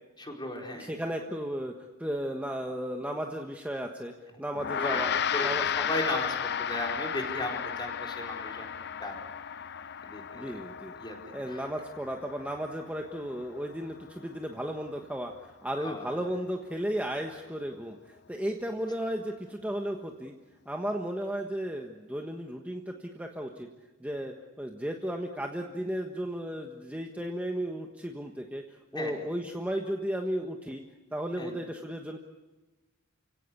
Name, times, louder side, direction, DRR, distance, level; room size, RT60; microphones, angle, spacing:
voice 1, 0.2-0.9 4.8-5.1 5.3-8.7 9.0-9.2 10.0-10.7 10.9-11.2 11.5-11.6 15.8-16.1 28.9-29.1 31.4-31.5, left 1 dB, 20° left, 1 dB, 4.6 m, -36 dB
voice 2, 0.8-1.7 2.0-4.1 4.4-5.1 5.4-5.7 10.3-10.9 11.3-20.3 20.6-23.7 24.0-28.6 28.9-30.8 31.1-32.2, equal, 5° right, 2 dB, 1.4 m, -34 dB
Gong, 4.6-14.2, left 8 dB, 55° left, 0.7 m, -34 dB
30.0 x 17.0 x 8.5 m, 1.2 s
head